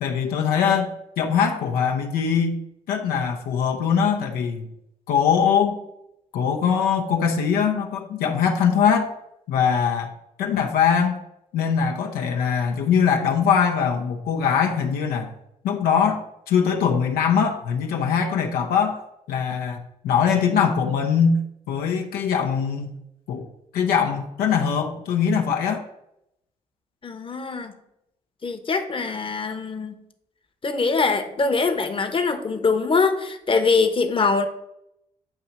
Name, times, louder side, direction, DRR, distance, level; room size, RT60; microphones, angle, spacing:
voice 1, 0.0-2.6 2.9-4.7 5.1-5.8 6.3-9.1 9.5-10.1 10.4-11.2 11.5-15.3 15.6-19.0 19.3-21.4 21.7-22.9 23.3-23.4 23.7-25.8, left 7 dB, 80° left, 3 dB, 0.6 m, -22 dB
voice 2, 27.0-27.7 28.4-30.0 30.6-34.5, left 4 dB, 35° left, 7 dB, 0.9 m, -23 dB
7.7 x 2.9 x 5.7 m, 0.81 s
supercardioid pair, 60°, 15 cm